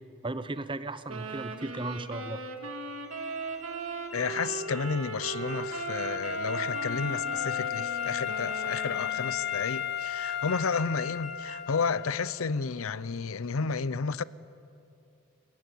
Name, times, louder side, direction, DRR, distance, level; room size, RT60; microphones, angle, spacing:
voice 1, 0.2-2.4, right 2 dB, 25° right, 0.9 m, -35 dB
sound 1, 1.1-9.5, right 4 dB, 80° right, 2.3 m, -38 dB
sound 2, 3.0-11.6, right 1 dB, 5° right, 3.1 m, -49 dB
voice 2, 4.1-14.2, left 5 dB, 80° left, 0.6 m, -31 dB
Wind instrument woodwind instrument, 4.5-12.3, left 9 dB, 55° left, 0.9 m, -34 dB
29.5 x 17.5 x 9.1 m
head